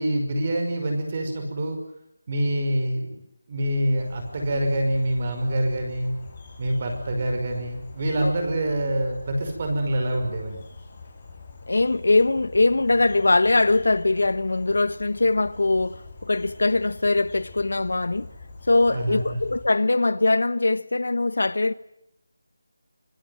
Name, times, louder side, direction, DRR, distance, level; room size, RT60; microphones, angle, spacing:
voice 1, 0.0-1.8 2.3-3.2 3.5-6.1 6.6-10.6 18.9-19.4, right 1 dB, 25° right, 5.6 m, -26 dB
sound 1, 4.0-19.6, left 3 dB, 20° left, 5.8 m, -44 dB
voice 2, 11.7-18.3 18.7-21.7, left 2 dB, 70° left, 1.3 m, -22 dB
25.5 x 24.5 x 8.0 m
figure-of-eight pair, 180°, 0 cm